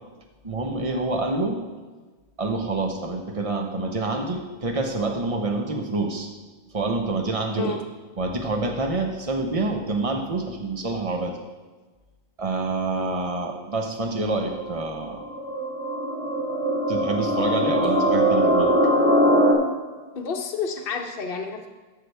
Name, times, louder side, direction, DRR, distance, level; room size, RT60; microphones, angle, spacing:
voice 1, 0.4-1.6 2.4-6.3 6.7-7.8 8.2-11.4 12.4-15.2 16.9-18.7, right 3 dB, 35° right, 3 dB, 1.1 m, -27 dB
sound 1, 14.5-19.5, equal, 10° right, 2.0 m, -22 dB
voice 2, 20.1-21.7, left 6 dB, 60° left, 2 dB, 1.1 m, -30 dB
12.5 x 7.0 x 3.4 m, 1.3 s
omnidirectional pair, 1.1 m